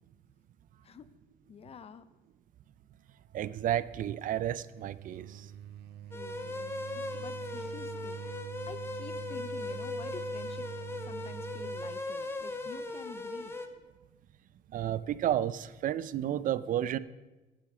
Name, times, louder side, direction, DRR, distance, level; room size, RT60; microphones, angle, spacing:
voice 1, 1.5-2.1 6.1-10.7 11.0-13.5, left 7 dB, 35° left, 15 dB, 0.7 m, -49 dB
voice 2, 3.3-5.5 14.7-17.0, right 11 dB, 55° right, 17 dB, 0.5 m, -31 dB
sound 1, 4.3-12.1, right 12 dB, 75° right, 0.8 m, -45 dB
sound 2, 6.1-13.7, left 2 dB, 15° left, 1.1 m, -38 dB
12.5 x 8.8 x 4.9 m, 1.1 s
cardioid pair, 110°, 17 cm